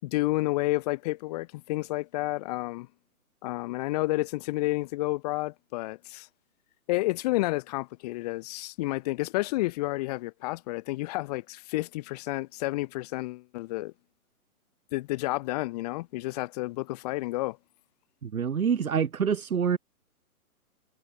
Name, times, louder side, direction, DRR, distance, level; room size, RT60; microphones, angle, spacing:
voice 1, 0.0-2.9 3.4-6.3 6.9-13.9 14.9-17.6, left 20 dB, 25° left, 4.3 m, -30 dB
voice 2, 18.2-19.8, right 7 dB, 70° right, 3.1 m, -26 dB
hypercardioid pair, 160°, 44 cm